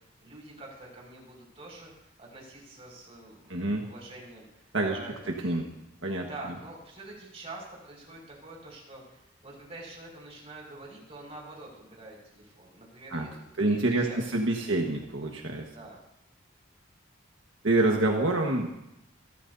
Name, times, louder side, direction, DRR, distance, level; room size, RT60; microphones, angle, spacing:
voice 1, 0.0-5.7 6.1-14.8 15.7-16.0, right 2 dB, 30° right, -2 dB, 5.9 m, -46 dB
voice 2, 3.5-3.8 4.7-5.0 5.4-5.6 6.0-6.3 13.1-13.3 13.6-15.7 17.6-18.7, right 2 dB, 80° right, 1 dB, 1.5 m, -26 dB
27.0 x 13.5 x 2.8 m, 0.86 s
head